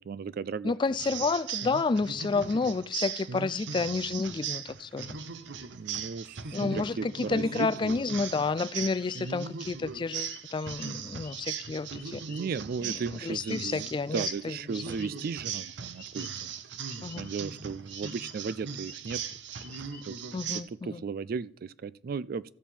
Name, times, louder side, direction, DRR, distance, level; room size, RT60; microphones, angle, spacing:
voice 1, 0.0-0.7 1.6-1.8 3.3-3.5 5.7-8.0 9.2-9.3 12.3-16.5 17.2-19.2 20.1-20.2 20.8-22.5, right 5 dB, 55° right, 0.3 m, -36 dB
voice 2, 0.6-5.2 6.5-12.2 12.8-12.9 13.2-14.6 14.9-15.0 17.0-17.3 20.3-21.0, left 4 dB, 25° left, 0.3 m, -30 dB
sound 1, 1.0-20.6, right 7 dB, 80° right, 0.7 m, -39 dB
sound 2, 8.6-14.0 14.2-15.3 16.0-17.5 17.9-20.1, left 8 dB, 55° left, 1.1 m, -53 dB
13.5 x 7.2 x 4.4 m
head